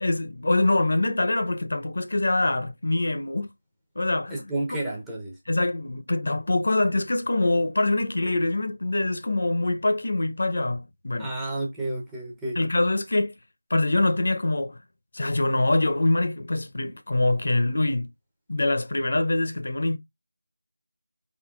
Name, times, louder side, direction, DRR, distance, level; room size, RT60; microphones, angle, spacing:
voice 1, 0.0-3.5 4.0-4.5 5.5-11.3 12.6-13.4 13.7-14.8 15.1-18.1 18.5-20.0, left 2 dB, 55° left, 0.7 m, -24 dB
voice 2, 4.3-5.4 11.2-12.6, right 1 dB, 5° right, 0.7 m, -31 dB
4.0 x 3.7 x 2.3 m
figure-of-eight pair, 170°, 0 cm